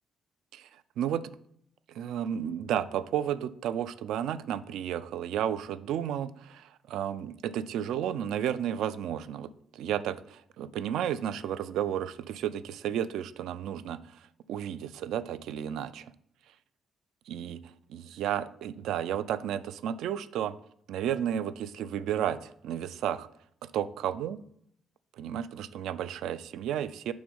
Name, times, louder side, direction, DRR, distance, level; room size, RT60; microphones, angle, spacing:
voice 1, 1.0-1.3 1.9-14.2 14.5-16.1 17.3-17.6 17.9-20.5 20.9-23.3 23.7-24.4 25.2-27.1, right 10 dB, 85° right, 15 dB, 0.3 m, -32 dB
6.3 x 3.5 x 5.3 m, 0.68 s
cardioid pair, 175°, 0 cm